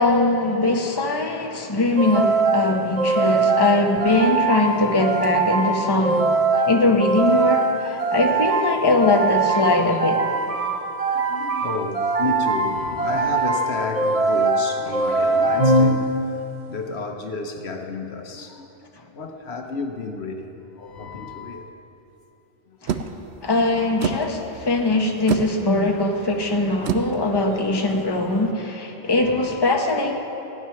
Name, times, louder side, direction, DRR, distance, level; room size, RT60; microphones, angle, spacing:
voice 1, 0.0-6.3 6.7-10.2 22.8-23.0 23.4-30.1, left 2 dB, 25° left, 1 dB, 1.0 m, -21 dB
sound 1, 2.0-16.5, right 3 dB, 35° right, 0.9 m, -22 dB
voice 2, 3.2-3.5 4.5-5.1 6.6-6.7 7.2-8.1 9.5-10.1 10.6-18.9 19.1-21.7 22.7-22.8 23.6-24.4 28.3-28.5 29.0-29.6, left 4 dB, 70° left, 4 dB, 1.2 m, -33 dB
sound 2, 22.9-28.5, right 7 dB, 75° right, 0.9 m, -31 dB
16.0 x 9.9 x 5.8 m, 2.9 s
omnidirectional pair, 1.1 m